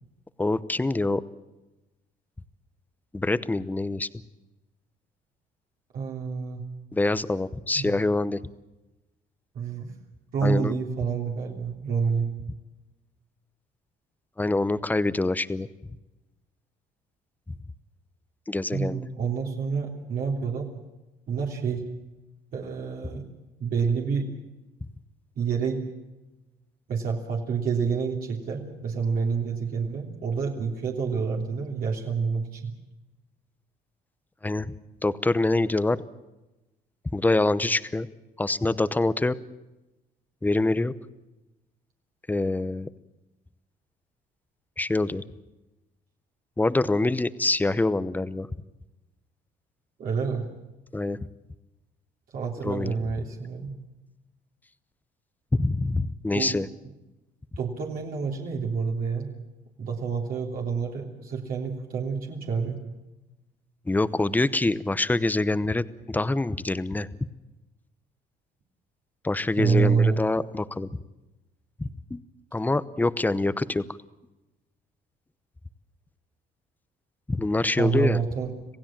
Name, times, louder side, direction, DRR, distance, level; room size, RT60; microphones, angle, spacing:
voice 1, 0.4-1.2 3.1-4.1 6.9-8.4 10.4-10.7 14.4-15.7 18.5-19.0 34.4-34.7 35.0-36.0 37.1-38.1 38.4-39.4 40.4-40.9 42.3-42.9 44.8-45.2 46.6-48.5 50.9-51.2 52.6-52.9 55.5-56.7 63.9-67.1 69.2-70.9 71.8-72.2 72.5-73.8 77.3-78.2, left 2 dB, 10° left, 15 dB, 0.9 m, -25 dB
voice 2, 5.9-6.6 7.7-8.0 9.5-9.9 10.3-12.3 18.7-20.7 21.3-21.8 22.5-23.2 23.6-24.3 25.4-25.8 26.9-32.7 50.0-50.4 52.3-53.7 56.3-56.6 57.6-59.3 59.8-62.8 69.6-70.2 77.8-78.5, right 5 dB, 60° right, -1 dB, 3.3 m, -28 dB
27.0 x 16.5 x 7.5 m, 1.0 s
cardioid pair, 110°, 17 cm